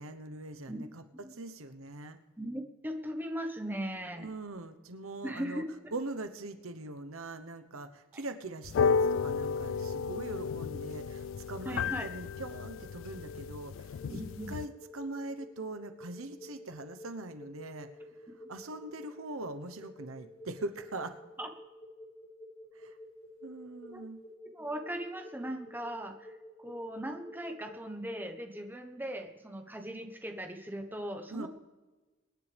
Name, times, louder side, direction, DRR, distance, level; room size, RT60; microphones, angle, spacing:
voice 1, 0.0-1.0 1.3-2.2 4.2-5.6 5.9-17.9 18.5-21.2 22.7-23.0 23.4-24.2 31.3-31.5, right 2 dB, 80° right, 10 dB, 1.0 m, -42 dB
voice 2, 2.4-4.3 5.2-5.9 8.1-8.2 11.6-12.1 14.1-14.5 21.4-21.5 23.9-24.0 24.5-26.3 26.6-31.5, right 1 dB, 10° right, 5 dB, 1.1 m, -39 dB
sound 1, 8.6-14.7, left 5 dB, 65° left, 0.3 m, -32 dB
sound 2, 14.0-28.2, equal, 30° left, 5.8 m, -50 dB
24.5 x 10.5 x 3.4 m, 1.2 s
head